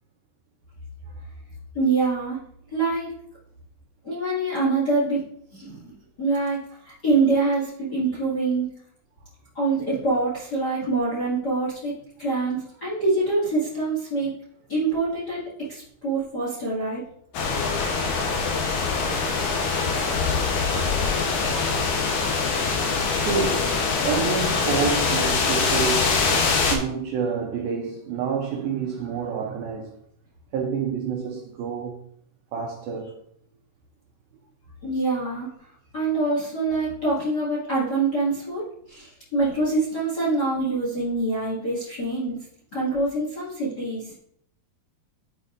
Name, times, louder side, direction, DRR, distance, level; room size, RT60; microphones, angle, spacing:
voice 1, 1.7-2.4 2.7-3.1 4.0-5.2 5.5-5.9 6.2-8.7 9.5-11.9 12.2-14.3 14.7-17.0 34.8-35.5 35.9-42.4 42.7-44.1, right 3 dB, 35° left, 1.7 m, -25 dB
sound 1, 17.3-26.8, left 4 dB, 75° left, 1.8 m, -23 dB
voice 2, 23.2-26.3 26.6-29.9 30.5-32.0 32.5-33.1, right 6 dB, 75° right, 2.3 m, -28 dB
10.0 x 5.1 x 2.6 m
omnidirectional pair, 4.7 m